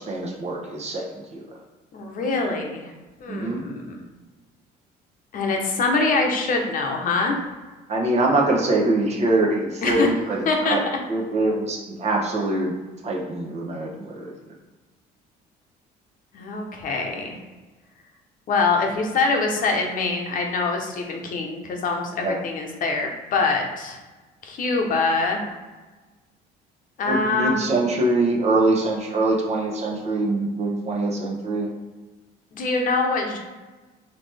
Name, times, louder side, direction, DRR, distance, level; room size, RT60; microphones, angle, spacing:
voice 1, 0.0-1.4 3.3-3.6 7.9-10.8 11.1-12.7 13.0-14.3 22.2-22.4 27.1-31.7, right 2 dB, 40° right, -1 dB, 0.9 m, -23 dB
voice 2, 1.9-2.9 3.2-4.0 5.3-7.4 9.8-10.1 10.5-10.8 16.3-17.4 18.5-24.0 24.4-25.4 27.0-27.7 32.5-33.4, left 3 dB, 55° left, 2 dB, 0.9 m, -24 dB
4.0 x 3.0 x 3.4 m, 1.2 s
cardioid pair, 110°, 17 cm